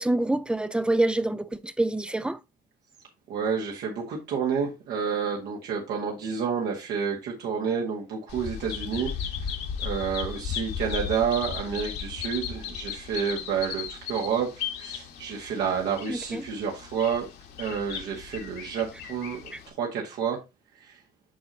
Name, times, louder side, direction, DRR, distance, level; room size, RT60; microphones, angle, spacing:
voice 1, 0.0-2.4 16.1-16.4, right 2 dB, 5° right, 0.5 m, -26 dB
voice 2, 3.3-9.1 9.4-9.5 9.8-17.3 17.6-20.4 20.8-21.0, right 7 dB, 80° right, 1.8 m, -29 dB
Bird vocalization bird call bird song, 8.3-19.7, left 8 dB, 75° left, 2.0 m, -36 dB
8.5 x 5.4 x 2.8 m
cardioid pair, 110°, 17 cm